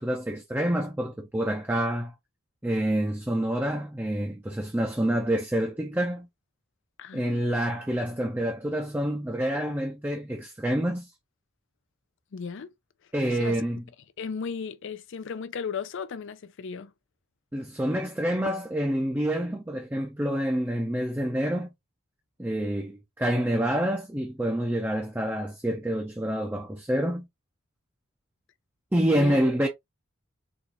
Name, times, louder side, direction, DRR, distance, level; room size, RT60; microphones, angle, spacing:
voice 1, 0.0-2.1 2.6-6.3 7.1-11.1 13.1-13.8 17.5-21.7 22.4-27.3 28.9-29.7, right 1 dB, 10° right, 0.5 m, -27 dB
voice 2, 7.0-7.5 12.3-12.7 13.3-13.6 14.2-16.9 29.1-29.4, left 5 dB, 60° left, 0.4 m, -35 dB
4.1 x 2.4 x 2.9 m
head